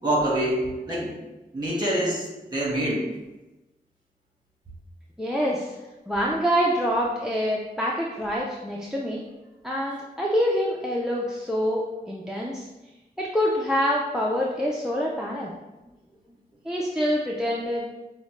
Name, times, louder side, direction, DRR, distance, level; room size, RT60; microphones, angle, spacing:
voice 1, 0.0-1.1 1.5-3.1, right 1 dB, 25° right, -5 dB, 1.4 m, -25 dB
voice 2, 5.2-5.7 6.1-9.2 9.6-12.7 13.2-15.5 16.6-17.9, equal, 5° right, -3 dB, 0.4 m, -26 dB
5.0 x 2.1 x 3.1 m, 1.1 s
wide cardioid pair, 70°, 17 cm